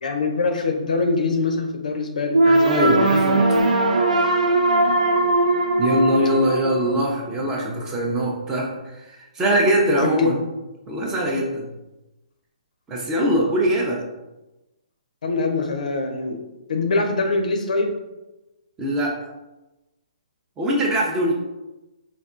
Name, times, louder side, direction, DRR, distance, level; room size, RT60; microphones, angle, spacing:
voice 1, 0.0-2.9 10.0-10.4 15.2-16.4 16.7-18.0, left 3 dB, 75° left, 4 dB, 0.5 m, -23 dB
sound 1, 2.3-7.4, right 2 dB, 80° right, 0.4 m, -19 dB
voice 2, 2.7-3.4 5.8-10.4 10.9-11.7 12.9-14.0 18.8-19.2 20.6-21.3, right 1 dB, 15° right, -1 dB, 0.5 m, -22 dB
3.3 x 2.3 x 2.4 m, 1.0 s
hypercardioid pair, 145°, 4 cm